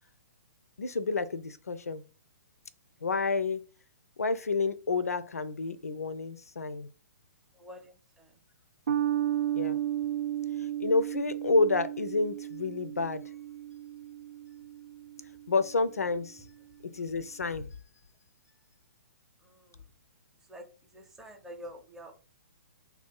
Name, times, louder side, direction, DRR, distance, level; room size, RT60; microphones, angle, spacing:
voice 1, 0.8-2.0 3.0-3.6 4.2-6.9 9.5-9.8 10.6-13.2 15.5-16.4 16.8-17.7, left 3 dB, 75° left, 0.4 m, -29 dB
voice 2, 7.6-7.9 20.5-20.6 20.9-22.1, equal, 5° right, 0.6 m, -46 dB
sound 1, 8.9-15.6, right 12 dB, 60° right, 0.4 m, -34 dB
2.7 x 2.3 x 3.6 m
figure-of-eight pair, 120°, 8 cm